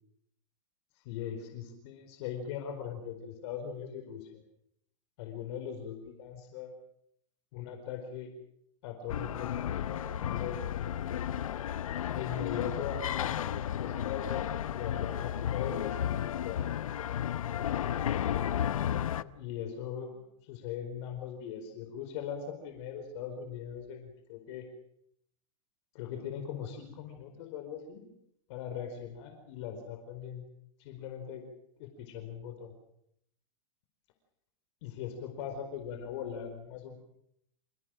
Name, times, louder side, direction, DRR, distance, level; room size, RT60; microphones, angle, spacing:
voice 1, 0.9-4.4 5.2-6.7 7.5-8.3 8.8-10.8 12.1-16.6 19.2-24.7 25.9-28.1 28.5-30.5 30.8-31.4 31.8-32.8 34.8-37.0, left 8 dB, 55° left, 6 dB, 4.6 m, -40 dB
sound 1, 9.1-19.2, left 10 dB, 85° left, 0.9 m, -33 dB
28.0 x 17.5 x 7.7 m, 0.75 s
hypercardioid pair, 130°, 17 cm